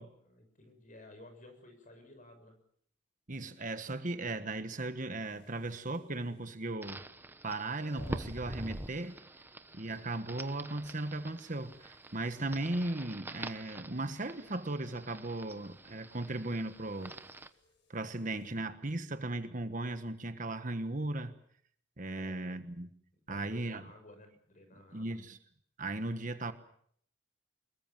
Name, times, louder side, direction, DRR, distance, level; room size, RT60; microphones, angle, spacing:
voice 1, 0.0-2.6 6.5-6.8 22.0-22.5 23.3-25.2, left 1 dB, 40° left, 6.9 m, -55 dB
voice 2, 3.3-7.0 7.4-9.1 9.7-17.1 17.9-21.3 22.0-22.9 23.3-23.8 24.9-25.4 25.8-26.5, right 2 dB, 40° right, 1.4 m, -37 dB
sound 1, 5.1-18.6, left 1 dB, 60° left, 6.8 m, -65 dB
sound 2, 6.8-17.5, right 1 dB, 10° right, 1.0 m, -46 dB
25.5 x 22.0 x 7.4 m
head